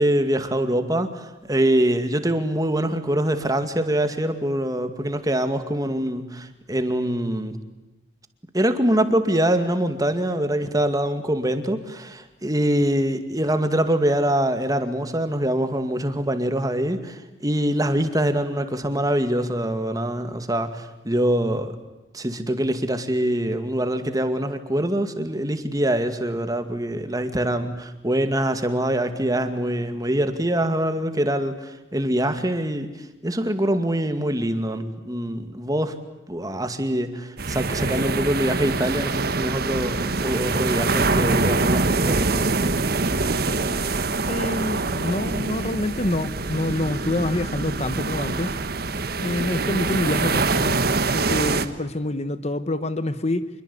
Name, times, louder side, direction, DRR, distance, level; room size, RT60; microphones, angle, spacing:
voice 1, 0.0-7.6 8.5-21.8 22.1-32.9 33.2-35.9 36.3-42.6, right 1 dB, 20° right, 8 dB, 2.3 m, -24 dB
sound 1, 37.4-51.7, right 3 dB, 55° right, 1.5 m, -24 dB
voice 2, 44.3-48.5 49.2-50.8 51.1-53.5, left 1 dB, 35° left, 12 dB, 1.1 m, -26 dB
27.0 x 22.5 x 8.5 m, 1.1 s
head